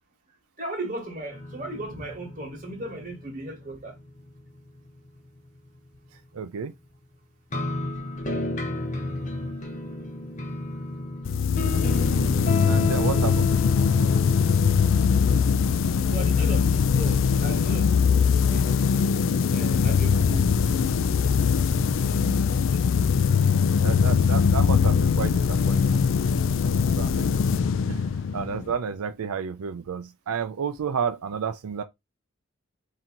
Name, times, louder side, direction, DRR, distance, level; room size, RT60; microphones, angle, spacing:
voice 1, 0.6-3.9 16.1-19.1 19.5-20.5, right 2 dB, 40° right, 1.5 m, -36 dB
sound 1, 1.3-5.7 7.5-18.4, left 1 dB, 35° left, 0.8 m, -33 dB
voice 2, 6.3-6.7 12.7-13.6 22.0-22.6 23.8-26.1 26.6-27.3 27.9-28.1 28.3-31.8, right 6 dB, 85° right, 0.4 m, -31 dB
sound 2, 11.3-28.8, left 6 dB, 60° left, 0.3 m, -22 dB
4.3 x 2.8 x 3.7 m
head